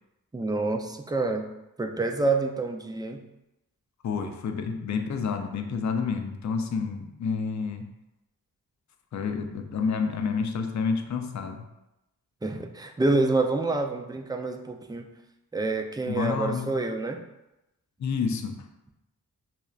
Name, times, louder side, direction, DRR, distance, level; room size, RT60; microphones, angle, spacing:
voice 1, 0.3-1.5 1.8-3.2 12.4-15.1 15.5-17.2, right 3 dB, 10° right, 4 dB, 0.4 m, -27 dB
voice 2, 4.0-7.9 9.1-11.6 16.1-16.7 18.0-18.7, left 5 dB, 50° left, 6 dB, 0.5 m, -29 dB
5.6 x 2.0 x 2.4 m, 0.92 s
cardioid pair, 50°, 36 cm